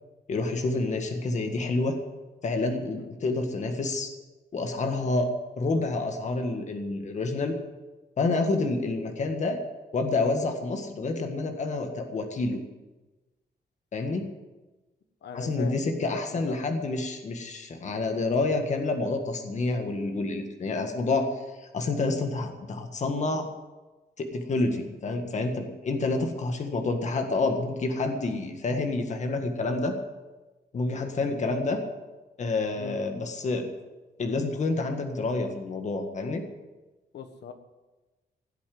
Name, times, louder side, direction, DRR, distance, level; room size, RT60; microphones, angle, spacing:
voice 1, 0.3-2.0 2.4-4.1 4.5-5.3 5.6-7.5 8.2-9.6 9.9-12.6 13.9-14.3 15.3-21.3 21.7-23.5 24.2-29.9 30.7-31.8 32.4-33.7 34.2-36.4, left 3 dB, 45° left, 5 dB, 1.7 m, -28 dB
voice 2, 15.2-15.8 16.3-16.6 30.9-31.3 32.8-33.0 37.1-37.5, left 7 dB, 80° left, 8 dB, 1.4 m, -40 dB
16.5 x 8.5 x 7.7 m, 1.2 s
wide cardioid pair, 165°, 17 cm